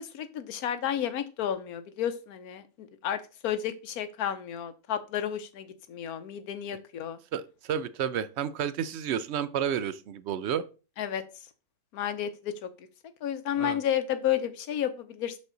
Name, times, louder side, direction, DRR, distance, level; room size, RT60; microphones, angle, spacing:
voice 1, 0.0-7.2 11.0-11.2 11.9-12.9 13.2-15.4, left 10 dB, 90° left, 1.3 m, -32 dB
voice 2, 7.3-10.6 13.6-13.8, right 8 dB, 65° right, 0.7 m, -31 dB
6.3 x 5.3 x 3.8 m
omnidirectional pair, 1.5 m